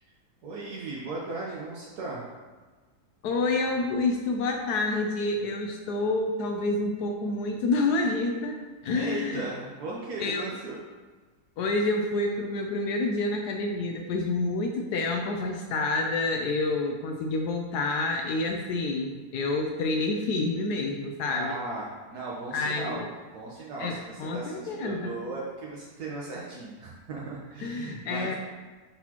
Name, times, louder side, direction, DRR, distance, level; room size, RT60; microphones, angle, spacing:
voice 1, 0.4-2.3 8.8-10.8 21.3-23.1 23.3-28.4, right 2 dB, 75° right, -5 dB, 1.5 m, -37 dB
voice 2, 3.2-9.5 10.2-10.4 11.6-21.6 22.5-23.1 23.8-25.1 27.6-28.3, left 2 dB, 80° left, 2 dB, 1.2 m, -28 dB
11.5 x 4.1 x 3.0 m, 1.4 s
omnidirectional pair, 1.7 m